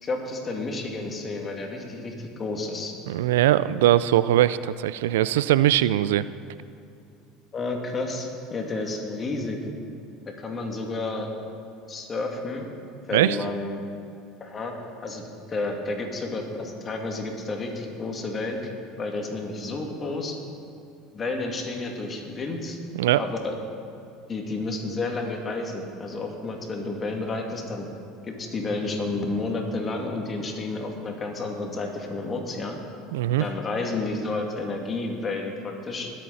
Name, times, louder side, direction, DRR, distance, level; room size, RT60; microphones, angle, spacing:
voice 1, 0.0-2.9 7.5-9.6 10.3-11.3 11.9-12.7 13.1-13.8 14.4-14.7 15.0-18.7 19.0-20.4 21.1-22.8 23.2-23.6 24.3-27.9 28.2-32.8 33.4-36.1, left 3 dB, 35° left, 1 dB, 2.5 m, -31 dB
voice 2, 3.1-6.2 13.1-13.4 22.9-23.2 33.1-33.5, right 13 dB, 80° right, 16 dB, 0.3 m, -21 dB
21.0 x 8.7 x 4.2 m, 2.6 s
hypercardioid pair, 80°, 0 cm